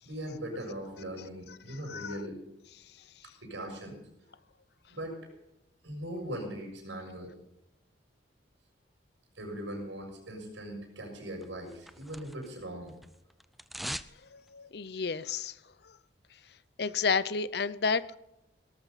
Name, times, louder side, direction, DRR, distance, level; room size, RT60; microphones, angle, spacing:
voice 1, 0.0-2.4 3.4-4.0 4.9-5.2 5.8-7.3 9.3-13.0, right 1 dB, 85° right, 2 dB, 6.6 m, -40 dB
voice 2, 1.7-2.1 14.3-15.5 16.8-18.2, left 5 dB, 60° left, 17 dB, 0.6 m, -31 dB
sound 1, 11.4-12.6 12.9-14.2 14.5-14.6, equal, ahead, 0.4 m, -41 dB
18.0 x 14.0 x 4.1 m, 0.87 s
head